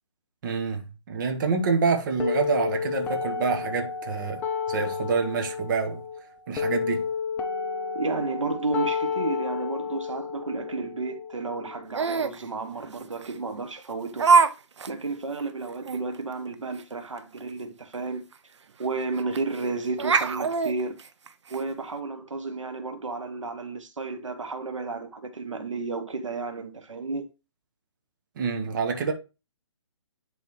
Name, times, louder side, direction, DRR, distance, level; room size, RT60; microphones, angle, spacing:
voice 1, 0.4-4.4 4.7-6.0 6.5-7.1 28.3-29.1, right 5 dB, 40° right, 1.5 m, -27 dB
sound 1, 2.2-12.2, left 6 dB, 10° left, 0.6 m, -31 dB
voice 2, 7.9-14.5 14.9-18.2 18.8-20.9 21.5-27.3, right 3 dB, 90° right, 1.3 m, -32 dB
Laughter, 11.9-12.4 13.2-13.3 14.2-14.5 14.8-14.9 15.4-15.5 15.9-16.0 17.9-18.0 18.3-18.4 19.4-19.6 20.0-21.6, right 5 dB, 70° right, 0.7 m, -22 dB
10.5 x 3.9 x 3.3 m
hypercardioid pair, 150°, 16 cm